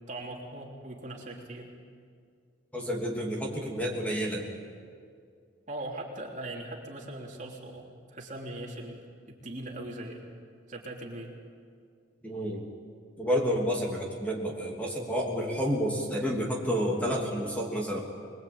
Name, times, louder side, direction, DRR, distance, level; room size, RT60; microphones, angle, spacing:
voice 1, 0.1-1.7 5.7-9.0 9.3-10.2 10.7-11.3, right 1 dB, 40° right, -1 dB, 3.4 m, -40 dB
voice 2, 2.7-4.5 12.2-12.6 13.2-18.0, equal, 5° left, -1 dB, 3.0 m, -30 dB
26.0 x 21.5 x 8.7 m, 2.2 s
head